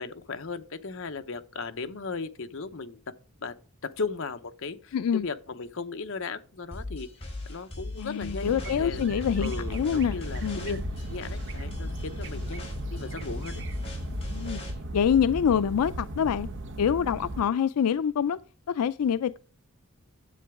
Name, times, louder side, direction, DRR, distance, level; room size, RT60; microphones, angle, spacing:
voice 1, 0.0-3.0 3.4-3.5 3.8-7.1 7.5-8.5 8.8-9.0 9.4-13.6, left 4 dB, 60° left, 0.8 m, -36 dB
voice 2, 4.9-5.3 8.0-10.8 14.3-14.6 14.9-16.5 16.8-18.4 18.7-19.4, left 8 dB, 85° left, 0.4 m, -26 dB
sound 1, 6.7-14.7, left 2 dB, 25° left, 3.9 m, -38 dB
sound 2, 8.4-17.4, right 1 dB, 55° right, 0.9 m, -36 dB
10.0 x 7.7 x 3.6 m
head